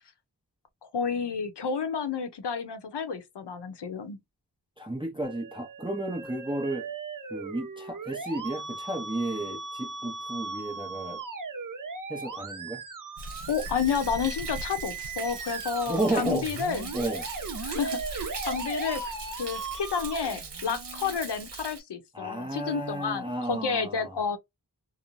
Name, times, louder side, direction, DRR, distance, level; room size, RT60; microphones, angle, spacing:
voice 1, 0.8-4.2 13.5-16.9 17.6-19.0 19.4-24.4, left 6 dB, 80° left, 0.7 m, -30 dB
voice 2, 4.8-6.9 7.3-11.2 12.1-12.8 15.8-16.5 16.9-17.3 22.1-24.2, right 1 dB, 10° right, 0.7 m, -32 dB
Musical instrument, 5.2-21.2, right 4 dB, 50° right, 0.7 m, -38 dB
Thunder, 13.2-21.8, right 3 dB, 80° right, 0.8 m, -40 dB
2.9 x 2.1 x 2.5 m
wide cardioid pair, 75°, 41 cm